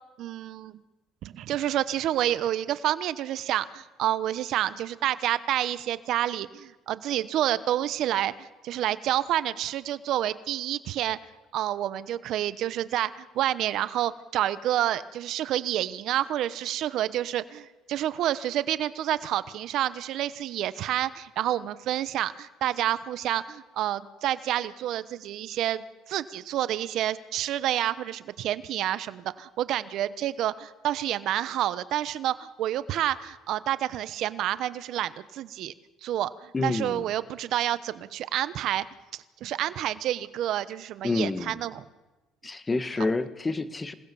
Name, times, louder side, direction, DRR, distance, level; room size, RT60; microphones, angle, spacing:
voice 1, 0.2-0.8 1.2-11.2 11.5-35.7 36.0-38.8 39.4-41.8, right 12 dB, 65° right, 15 dB, 1.0 m, -29 dB
voice 2, 36.5-37.1 41.0-41.6 42.4-43.9, left 3 dB, 20° left, 11 dB, 1.6 m, -28 dB
27.0 x 18.5 x 7.1 m, 1.1 s
cardioid pair, 105°, 0 cm